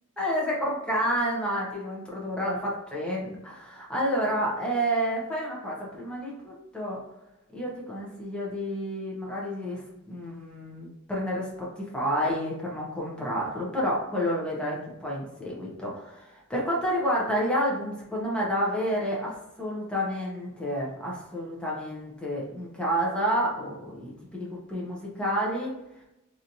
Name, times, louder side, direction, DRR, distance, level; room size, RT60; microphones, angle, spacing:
voice 1, 0.2-7.0 7.5-11.5 11.8-25.7, equal, 5° left, -5 dB, 0.9 m, -30 dB
3.1 x 2.7 x 2.7 m, 0.94 s
head